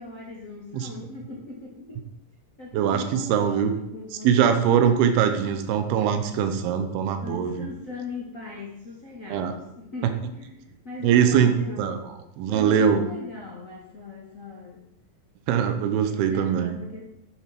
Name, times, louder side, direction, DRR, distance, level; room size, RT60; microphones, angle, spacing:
voice 1, 0.0-2.1 2.6-4.6 7.2-12.2 12.5-14.9 16.0-17.0, left 3 dB, 55° left, -4 dB, 0.9 m, -39 dB
voice 2, 2.7-3.7 4.2-7.7 9.3-9.5 11.0-12.0 12.4-13.0 15.5-16.8, right 8 dB, 85° right, 7 dB, 2.9 m, -22 dB
9.4 x 7.5 x 6.0 m, 0.84 s
omnidirectional pair, 4.5 m